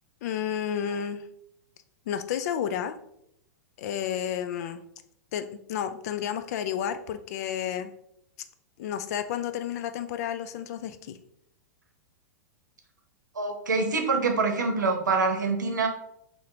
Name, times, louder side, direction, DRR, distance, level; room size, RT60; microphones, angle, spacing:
voice 1, 0.2-1.2 2.1-3.0 3.8-4.8 5.3-7.9 8.8-11.2, left 9 dB, 60° left, 10 dB, 0.4 m, -31 dB
voice 2, 13.4-15.9, right 4 dB, 90° right, 4 dB, 0.7 m, -25 dB
4.1 x 2.8 x 2.6 m, 0.74 s
hypercardioid pair, 110°, 10 cm